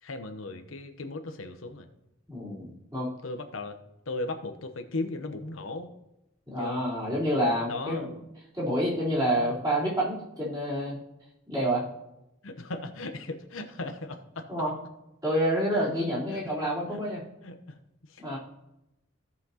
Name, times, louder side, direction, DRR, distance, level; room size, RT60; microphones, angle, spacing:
voice 1, 0.0-1.9 3.2-3.8 4.1-5.9 6.6-6.8 7.7-8.0 12.4-14.5 16.3-16.4 16.9-17.0 17.4-17.8 18.1-18.4, left 2 dB, 90° left, 6 dB, 0.9 m, -37 dB
voice 2, 2.3-3.1 6.5-8.1 8.5-10.9 11.5-11.8 14.5-14.7 15.2-17.2 18.2-18.4, equal, 20° right, -8 dB, 3.8 m, -28 dB
16.0 x 5.8 x 2.9 m, 0.90 s
head